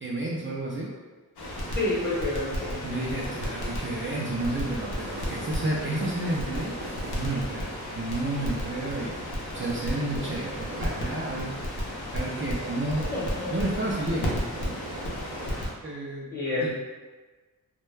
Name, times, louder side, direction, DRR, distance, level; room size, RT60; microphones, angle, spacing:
voice 1, 0.0-0.9 2.8-6.7 7.1-11.5 12.1-13.0 13.5-14.7 15.8-16.3 16.6-16.7, right 2 dB, 35° right, -5 dB, 0.4 m, -31 dB
Crackle, 1.4-15.7, equal, 90° left, 0.7 m, -33 dB
voice 2, 1.7-2.8 13.1-13.5 16.3-16.7, left 2 dB, 25° left, -9 dB, 0.9 m, -28 dB
sound 1, 4.3-15.6, right 1 dB, 80° right, 0.6 m, -43 dB
2.2 x 2.1 x 3.1 m, 1.3 s
wide cardioid pair, 65°, 37 cm